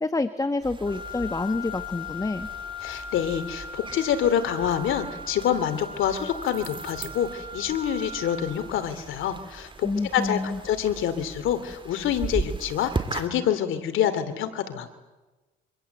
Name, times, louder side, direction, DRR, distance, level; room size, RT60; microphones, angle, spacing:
voice 1, 0.0-2.5 9.8-10.6, left 3 dB, 15° left, 11 dB, 1.2 m, -28 dB
sound 1, 0.6-13.3, right 3 dB, 25° right, 2.6 m, -38 dB
Wind instrument woodwind instrument, 0.9-8.6, left 3 dB, 50° left, 6.4 m, -39 dB
voice 2, 2.8-14.9, left 9 dB, 80° left, 11 dB, 2.7 m, -27 dB
25.5 x 25.0 x 8.1 m, 1.1 s
cardioid pair, 90°, 20 cm